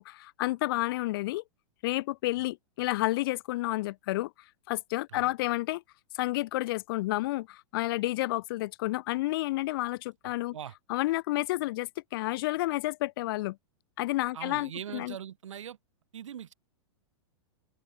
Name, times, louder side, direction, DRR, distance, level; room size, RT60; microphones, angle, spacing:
voice 1, 0.0-1.4 1.8-4.3 4.7-5.8 6.1-10.6 10.9-13.6 14.0-15.1, left 18 dB, 50° left, 0.4 m, -30 dB
voice 2, 10.2-10.7 14.3-15.8 16.1-16.5, right 9 dB, 85° right, 3.4 m, -41 dB
open air
hypercardioid pair, 145°, 16 cm